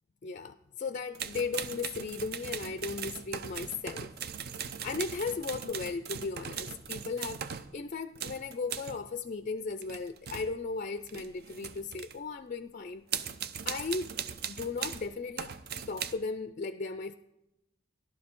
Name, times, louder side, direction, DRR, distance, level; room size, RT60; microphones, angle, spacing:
voice 1, 0.2-4.1 4.6-13.1 13.6-14.1 14.5-15.5 15.9-17.1, left 4 dB, 35° left, 10 dB, 0.4 m, -36 dB
sound 1, 1.1-7.8 8.2-9.1 9.7-10.6 11.0-12.2 13.1-15.1 15.4-16.1, right 7 dB, 50° right, 0.6 m, -39 dB
16.5 x 12.0 x 3.7 m, 0.92 s
head